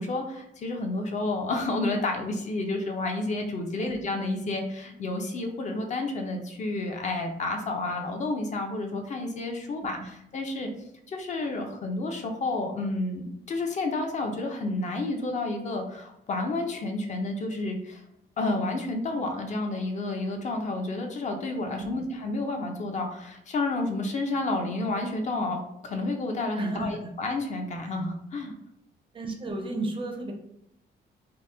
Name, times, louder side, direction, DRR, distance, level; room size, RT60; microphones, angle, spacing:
voice 1, 0.0-10.7 11.1-18.0 18.4-28.5, left 2 dB, 40° left, 3 dB, 0.4 m, -30 dB
voice 2, 26.5-27.1 29.1-30.3, right 2 dB, 30° right, 2 dB, 0.4 m, -33 dB
2.8 x 2.0 x 3.2 m, 0.76 s
wide cardioid pair, 165°, 18 cm